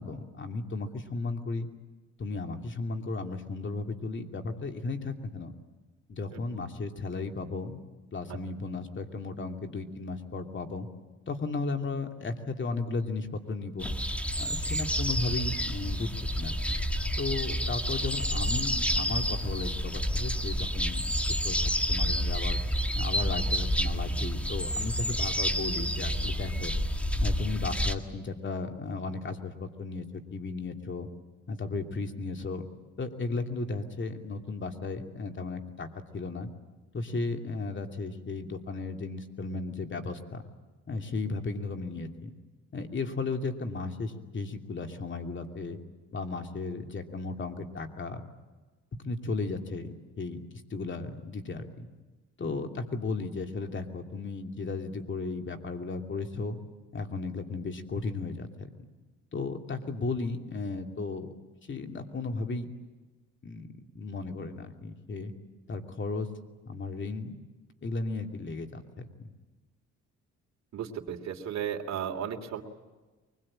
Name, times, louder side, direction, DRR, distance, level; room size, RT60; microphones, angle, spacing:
voice 1, 0.0-1.7 2.2-5.5 6.1-7.8 8.1-10.9 11.3-13.9 14.4-16.7 17.2-21.1 21.4-22.6 22.9-26.7 27.2-31.1 31.5-32.7 33.0-36.5 36.9-40.4 40.9-42.3 42.7-45.8 46.1-48.2 49.0-50.4 50.7-51.9 52.4-56.6 56.9-58.7 59.3-61.3 61.7-62.7 63.4-65.3 65.7-66.3 66.7-67.4 67.8-69.3, left 3 dB, 40° left, 5 dB, 2.8 m, -35 dB
sound 1, 13.8-28.0, equal, 5° left, 1.8 m, -29 dB
voice 2, 70.7-72.6, right 8 dB, 60° right, 1 dB, 3.1 m, -34 dB
24.0 x 21.5 x 8.8 m, 1.2 s
cardioid pair, 90°, 30 cm